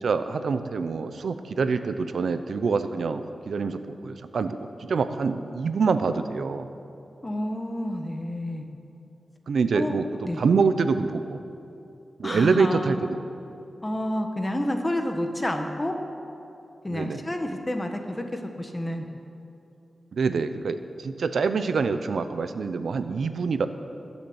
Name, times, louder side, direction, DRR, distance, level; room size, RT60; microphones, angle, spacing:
voice 1, 0.0-6.7 9.5-10.1 10.4-11.4 12.2-13.2 16.9-17.3 20.1-23.7, right 4 dB, 85° right, 10 dB, 0.7 m, -25 dB
voice 2, 7.2-8.7 9.7-9.9 10.2-10.4 12.2-12.9 13.8-15.9 16.8-19.1, left 1 dB, 20° left, 4 dB, 1.5 m, -29 dB
21.0 x 7.2 x 8.1 m, 2.8 s
wide cardioid pair, 110°, 0 cm